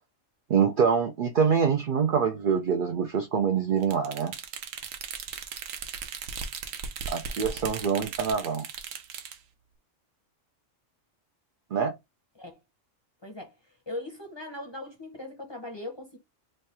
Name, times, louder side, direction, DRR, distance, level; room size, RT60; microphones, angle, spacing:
voice 1, 0.5-4.3 7.1-8.6 11.7-11.9, right 6 dB, 65° right, 0.5 m, -25 dB
sound 1, 3.8-9.4, right 6 dB, 80° right, 1.0 m, -37 dB
voice 2, 13.2-16.2, left 2 dB, 25° left, 0.6 m, -40 dB
3.2 x 2.3 x 4.1 m
omnidirectional pair, 1.3 m